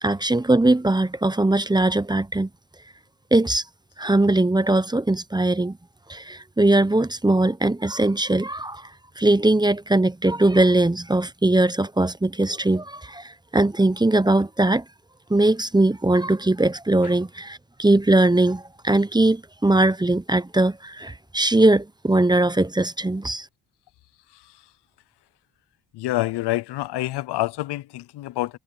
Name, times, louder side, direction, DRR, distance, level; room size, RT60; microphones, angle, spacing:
voice 1, 0.0-2.5 3.3-3.6 4.0-5.8 6.1-8.9 9.2-14.8 15.3-23.5, right 2 dB, 10° right, 0.8 m, -20 dB
voice 2, 25.9-28.6, left 16 dB, 70° left, 0.6 m, -27 dB
supercardioid pair, 65°, 42 cm